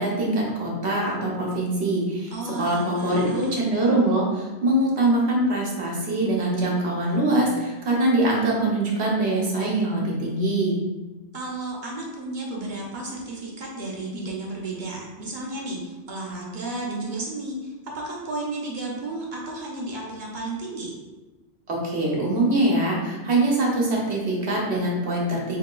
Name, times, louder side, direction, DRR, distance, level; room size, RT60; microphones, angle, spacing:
voice 1, 0.0-2.3 2.6-10.8 21.7-25.6, right 1 dB, 70° right, -3 dB, 1.2 m, -23 dB
voice 2, 2.3-3.5 11.3-20.9, right 2 dB, 45° right, -3 dB, 0.9 m, -33 dB
5.0 x 2.8 x 2.2 m, 1.2 s
omnidirectional pair, 1.2 m